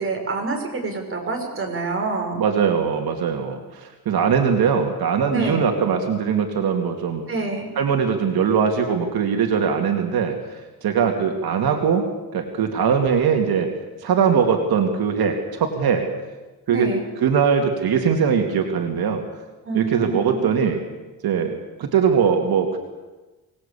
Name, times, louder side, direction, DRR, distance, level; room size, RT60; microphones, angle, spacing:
voice 1, 0.0-2.4 5.3-5.7 7.3-7.7 16.7-17.1 19.6-20.5, right 3 dB, 35° right, 2 dB, 5.6 m, -27 dB
voice 2, 2.4-7.2 7.8-12.1 12.3-13.7 14.0-16.1 16.7-16.9 17.2-19.2 19.7-20.8 21.2-22.8, right 6 dB, 85° right, 3 dB, 2.6 m, -21 dB
24.5 x 19.0 x 8.5 m, 1.2 s
wide cardioid pair, 140°, 36 cm